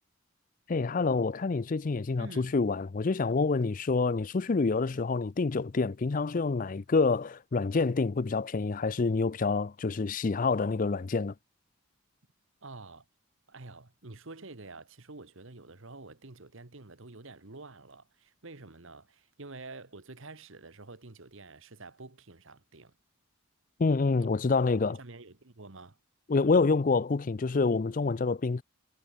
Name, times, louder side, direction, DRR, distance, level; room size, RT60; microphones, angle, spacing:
voice 1, 0.7-11.3 23.8-25.0 26.3-28.6, left 4 dB, 35° left, 0.4 m, -27 dB
voice 2, 2.2-2.6 12.6-13.0 13.5-22.9 24.2-24.4 24.9-26.0, right 3 dB, 60° right, 1.5 m, -48 dB
head